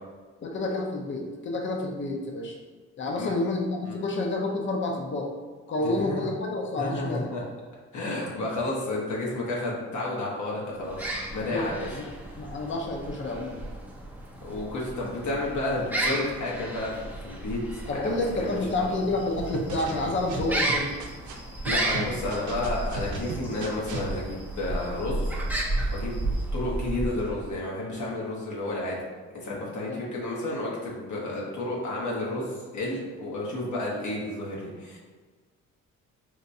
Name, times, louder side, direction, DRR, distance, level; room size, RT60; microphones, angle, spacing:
voice 1, 0.4-2.6 3.0-5.3 5.7-7.3 11.4-12.1 12.4-13.6 17.9-21.0 29.9-30.0, left 2 dB, 40° left, 1 dB, 0.6 m, -29 dB
voice 2, 5.8-6.2 6.8-7.4 7.9-11.9 14.4-18.6 18.9-19.0 21.6-25.3 25.9-26.1 26.5-29.0 29.3-35.0, left 2 dB, 70° left, -4 dB, 1.0 m, -31 dB
sound 1, 10.8-27.5, right 1 dB, 5° right, 0.5 m, -33 dB
sound 2, 18.0-26.4, equal, 90° left, 1.4 m, -53 dB
sound 3, 19.4-21.3 21.7-24.1, right 3 dB, 70° right, 0.6 m, -35 dB
4.7 x 2.2 x 2.6 m, 1.5 s
cardioid pair, 85°, 31 cm